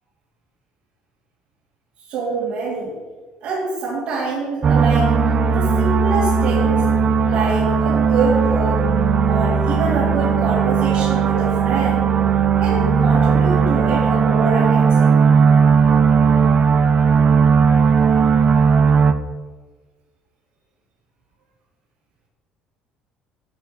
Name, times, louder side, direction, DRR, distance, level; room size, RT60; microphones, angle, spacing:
voice 1, 2.1-2.9 3.4-5.1 5.5-6.9 7.3-8.8 9.3-12.1 12.6-15.3, right 3 dB, 70° right, -8 dB, 4.0 m, -25 dB
sound 1, 4.6-19.1, right 6 dB, 40° right, 0.7 m, -16 dB
12.5 x 6.0 x 6.4 m, 1.4 s
cardioid pair, 120°, 2 cm